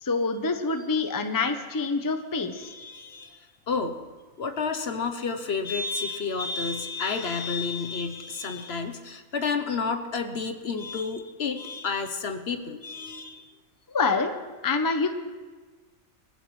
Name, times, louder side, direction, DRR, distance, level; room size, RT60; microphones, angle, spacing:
voice 1, 0.0-2.7 13.9-14.3 14.6-15.1, left 4 dB, 20° left, 7 dB, 0.7 m, -26 dB
voice 2, 2.5-4.0 4.4-13.5, left 4 dB, 55° left, 7 dB, 1.1 m, -31 dB
24.0 x 15.0 x 3.2 m, 1.4 s
omnidirectional pair, 1.4 m